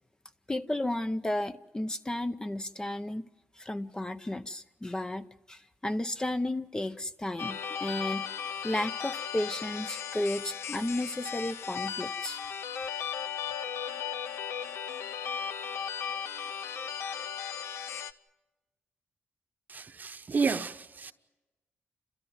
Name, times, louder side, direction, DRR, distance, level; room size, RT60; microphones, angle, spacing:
voice 1, 0.5-3.3 3.6-8.3 8.6-12.4, left 1 dB, 15° left, 0.7 m, -33 dB
sound 1, 7.4-18.1, left 7 dB, 85° left, 0.7 m, -36 dB
voice 2, 19.7-21.1, right 5 dB, 40° right, 1.0 m, -31 dB
29.5 x 13.5 x 9.5 m
cardioid pair, 90°, 4 cm